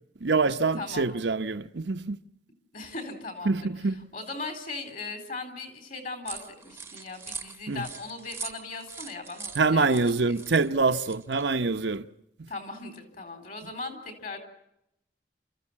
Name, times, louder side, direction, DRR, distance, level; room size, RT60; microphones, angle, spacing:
voice 1, 0.2-2.2 3.4-4.1 7.7-7.9 9.6-12.1, right 4 dB, 80° right, 0.8 m, -25 dB
voice 2, 0.8-1.1 2.7-3.7 4.1-10.2 10.5-10.6 12.5-14.4, left 3 dB, 45° left, 3.9 m, -38 dB
sound 1, 6.2-11.5, right 5 dB, 15° right, 0.9 m, -42 dB
29.0 x 14.5 x 8.6 m
head